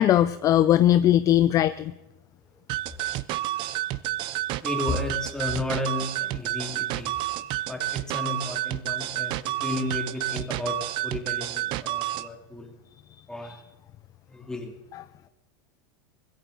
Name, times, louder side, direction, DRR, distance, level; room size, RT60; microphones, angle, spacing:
voice 1, 0.0-1.9 13.4-13.6, left 12 dB, 30° left, 13 dB, 0.4 m, -20 dB
sound 1, 2.7-12.3, right 15 dB, 45° right, 0.6 m, -30 dB
voice 2, 4.6-7.1 7.7-12.7 13.3-13.6 14.3-14.7, left 2 dB, 5° left, 1 dB, 2.5 m, -33 dB
20.5 x 16.0 x 3.9 m, 0.95 s
supercardioid pair, 140°, 12 cm